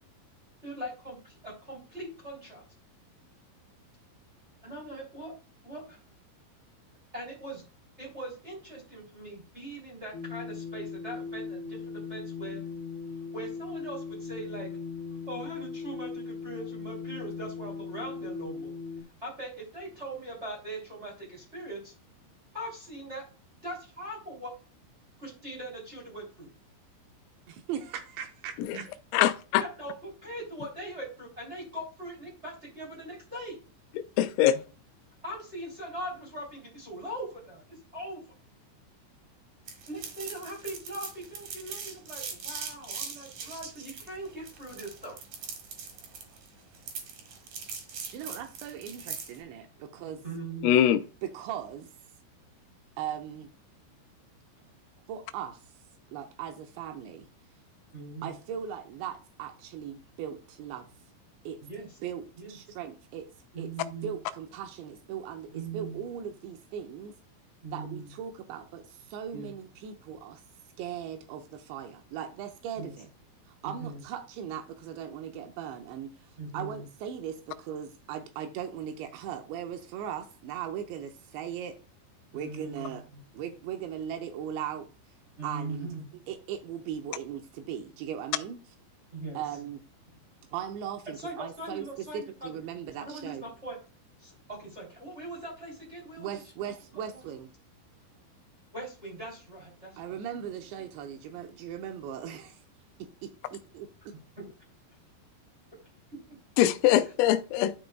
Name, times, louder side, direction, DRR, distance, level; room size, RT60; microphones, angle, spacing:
voice 1, 0.6-2.6 4.6-5.3 5.6-6.0 7.1-7.6 8.0-12.6 13.1-14.7 15.3-18.8 19.2-21.9 22.5-23.2 23.6-24.5 25.2-26.5 28.7-28.8 29.6-33.6 35.2-38.2 39.9-45.2 50.0-50.7 57.9-58.3 61.6-62.0 62.4-62.6 63.5-64.2 65.5-66.0 67.6-68.1 69.3-69.5 72.7-72.9 73.6-74.0 76.4-76.9 82.3-83.2 85.4-86.1 89.1-89.6 91.1-92.6 93.0-93.8 94.2-96.7 97.1-97.3 98.7-100.2 104.1-104.4, right 1 dB, 20° right, 2.1 m, -41 dB
sound 1, 10.1-19.0, left 5 dB, 70° left, 2.9 m, -39 dB
voice 2, 27.5-28.9 47.9-50.2 51.2-51.9 53.0-53.5 55.1-55.6 56.1-57.3 58.2-60.9 61.5-61.6 62.0-62.2 62.5-63.3 63.6-63.7 64.0-67.1 67.7-70.4 70.8-73.1 73.6-76.1 76.5-81.8 82.3-83.0 83.3-84.9 85.4-88.6 89.3-89.8 90.5-91.9 92.1-93.4 96.2-97.5 100.0-102.6 103.0-104.1, right 9 dB, 80° right, 2.7 m, -38 dB
voice 3, 34.2-34.6 50.6-51.0 106.6-107.7, left 11 dB, 85° left, 3.3 m, -22 dB
sound 2, 39.7-49.4, right 6 dB, 55° right, 2.6 m, -41 dB
13.0 x 5.1 x 2.3 m
omnidirectional pair, 5.8 m